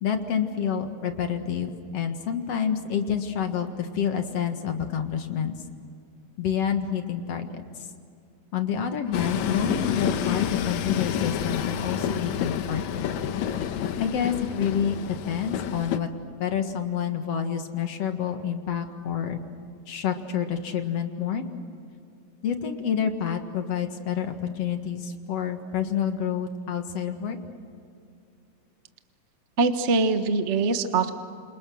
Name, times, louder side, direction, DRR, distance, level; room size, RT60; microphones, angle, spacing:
voice 1, 0.0-5.5 6.4-7.6 8.5-13.2 14.0-16.1 16.4-19.4 19.9-21.5 22.4-27.4, left 8 dB, 60° left, 6 dB, 2.6 m, -28 dB
Train, 9.1-16.0, left 9 dB, 75° left, 2.3 m, -29 dB
voice 2, 29.6-31.1, right 3 dB, 45° right, 7 dB, 0.8 m, -23 dB
28.5 x 28.0 x 6.3 m, 2.4 s
omnidirectional pair, 3.4 m